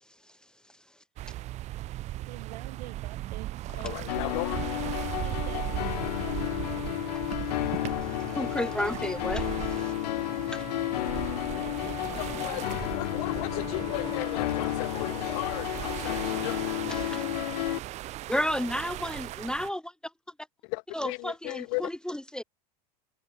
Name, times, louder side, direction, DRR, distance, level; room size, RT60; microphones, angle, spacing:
sound 1, 1.2-19.7, right 15 dB, 35° right, 0.4 m, -37 dB
voice 1, 2.2-4.2 5.2-7.2 11.5-14.7, right 16 dB, 75° right, 2.2 m, -48 dB
voice 2, 3.8-4.6 12.4-12.6 13.0-16.5 20.7-21.8, left 35 dB, 60° left, 0.6 m, -35 dB
sound 2, 4.1-17.8, left 16 dB, 75° left, 1.2 m, -32 dB
voice 3, 8.3-9.9 10.5-10.6 16.9-17.2 18.3-19.9 20.9-22.4, equal, 5° left, 0.9 m, -32 dB
sound 3, 11.8-17.3, left 6 dB, 25° left, 1.6 m, -45 dB
hypercardioid pair, 90°, 21 cm